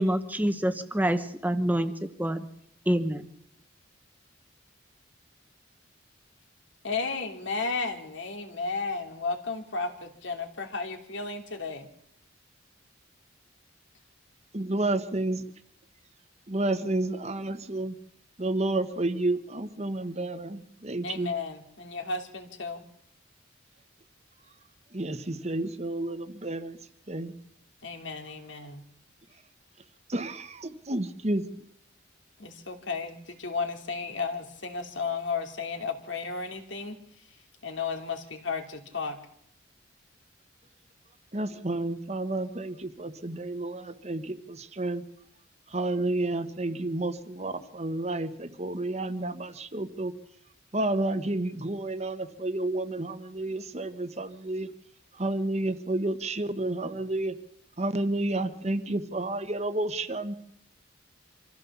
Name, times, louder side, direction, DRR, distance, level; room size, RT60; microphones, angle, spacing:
voice 1, 0.0-1.9 2.2-2.4 2.9-3.2, right 1 dB, 10° right, 9 dB, 1.1 m, -26 dB
voice 2, 6.8-11.9 21.0-22.8 27.8-28.8 32.4-37.0 37.6-39.2, left 4 dB, 70° left, 5 dB, 2.7 m, -33 dB
voice 3, 14.5-15.4 16.5-17.9 18.4-21.3 24.9-26.8 27.1-27.3 30.1-31.4 41.3-45.0 45.7-50.1 50.7-54.7 55.2-57.3 57.8-60.3, right 2 dB, 35° right, 11 dB, 1.2 m, -30 dB
25.5 x 15.0 x 7.2 m, 0.74 s
head